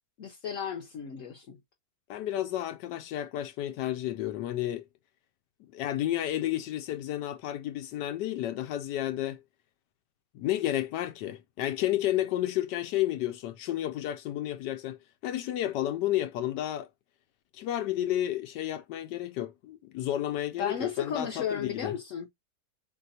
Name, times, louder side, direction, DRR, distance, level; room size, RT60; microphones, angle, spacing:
voice 1, 0.2-1.6 20.6-22.3, left 7 dB, 55° left, 1.1 m, -34 dB
voice 2, 2.1-4.8 5.7-9.4 10.3-16.9 17.5-22.0, left 13 dB, 85° left, 1.2 m, -31 dB
3.8 x 3.0 x 4.1 m
omnidirectional pair, 1.8 m